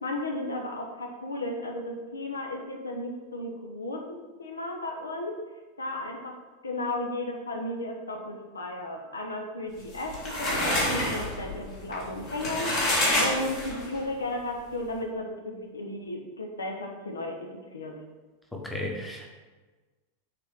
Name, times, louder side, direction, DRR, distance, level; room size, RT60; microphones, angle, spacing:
voice 1, 0.0-5.4 5.8-6.4 6.6-12.9 13.2-18.0, left 1 dB, 75° left, 2 dB, 0.9 m, -34 dB
sound 1, 9.8-14.0, left 1 dB, 40° left, 2.2 m, -28 dB
voice 2, 18.5-19.3, left 1 dB, 5° left, 0 dB, 1.1 m, -34 dB
6.9 x 4.3 x 4.8 m, 1.3 s
figure-of-eight pair, 90°, 0 cm